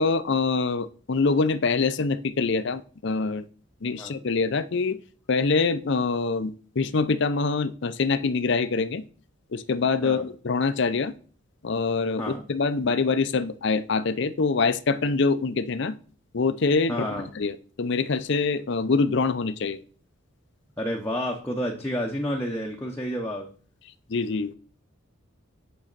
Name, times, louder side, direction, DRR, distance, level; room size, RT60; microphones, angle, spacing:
voice 1, 0.0-3.5 3.8-5.0 5.3-9.0 9.5-11.1 11.6-16.0 16.3-17.1 17.3-19.8 24.1-24.5, left 4 dB, 55° left, 14 dB, 0.5 m, -25 dB
voice 2, 16.9-17.3 20.8-23.5, equal, 10° left, -1 dB, 0.8 m, -30 dB
8.9 x 5.5 x 4.0 m, 0.42 s
head